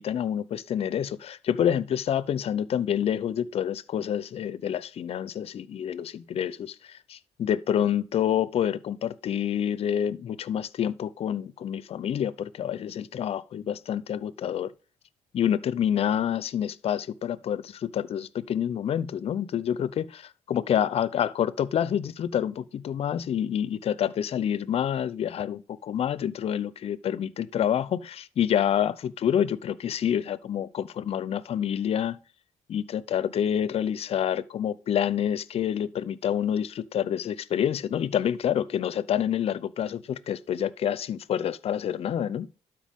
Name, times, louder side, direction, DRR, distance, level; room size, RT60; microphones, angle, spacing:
voice 1, 0.0-14.7 15.3-32.2 32.7-42.5, left 9 dB, 60° left, 0.6 m, -28 dB
12.5 x 4.7 x 3.6 m
cardioid pair, 80°, 12 cm